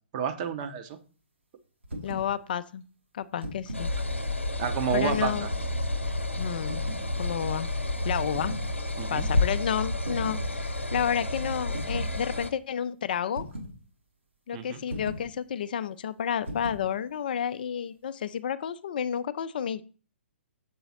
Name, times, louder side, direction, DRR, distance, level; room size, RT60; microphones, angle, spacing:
voice 1, 0.1-1.0 4.6-5.5 9.0-9.3 14.5-14.8, right 7 dB, 35° right, 8 dB, 0.7 m, -30 dB
sound 1, 1.8-2.3 3.2-3.9 5.1-5.6 6.6-7.1 8.3-8.7 10.0-10.5 11.7-12.1 13.4-13.8 14.9-15.3 16.5-16.9, equal, 75° right, 1.6 m, -37 dB
voice 2, 2.0-2.8 3.1-3.9 4.9-5.5 6.4-6.9 7.2-7.7 8.0-8.5 9.1-13.4 14.5-19.8, left 9 dB, 50° left, 14 dB, 0.3 m, -31 dB
sound 2, 3.7-12.5, left 2 dB, 85° left, 0.7 m, -30 dB
7.0 x 3.9 x 4.1 m, 0.38 s
figure-of-eight pair, 125°, 6 cm